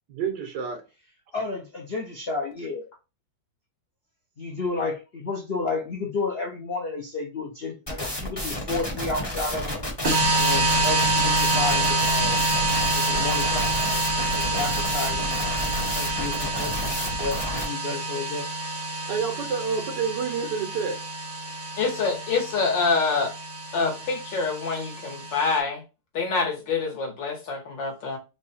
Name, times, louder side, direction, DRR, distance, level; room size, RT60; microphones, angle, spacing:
voice 1, 0.2-0.8 19.1-21.0, right 6 dB, 75° right, 1.7 m, -28 dB
voice 2, 1.3-2.9 4.4-9.8 10.4-12.4 12.9-15.4 15.9-18.5, left 3 dB, 60° left, 0.6 m, -32 dB
sound 1, 7.9-17.7, left 1 dB, 15° left, 1.3 m, -31 dB
sound 2, 10.0-25.6, right 2 dB, 35° right, 0.9 m, -27 dB
voice 3, 21.8-23.3 23.7-25.8 26.1-28.2, left 4 dB, 85° left, 2.2 m, -26 dB
4.6 x 2.3 x 4.2 m
omnidirectional pair, 1.9 m